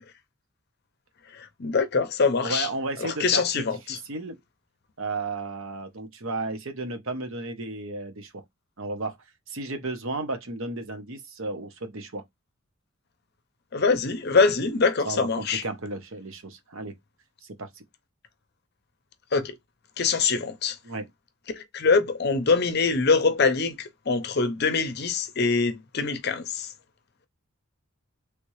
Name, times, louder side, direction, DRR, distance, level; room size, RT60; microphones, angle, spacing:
voice 1, 1.4-2.7 3.0-4.0 13.7-15.6 19.3-19.5 20.0-20.8 21.5-26.7, left 4 dB, 50° left, 0.6 m, -24 dB
voice 2, 2.4-4.4 5.0-8.4 8.8-9.2 9.5-12.2 15.0-16.9 17.4-17.8 20.8-21.1, right 2 dB, 65° right, 0.9 m, -33 dB
3.4 x 2.8 x 3.1 m
head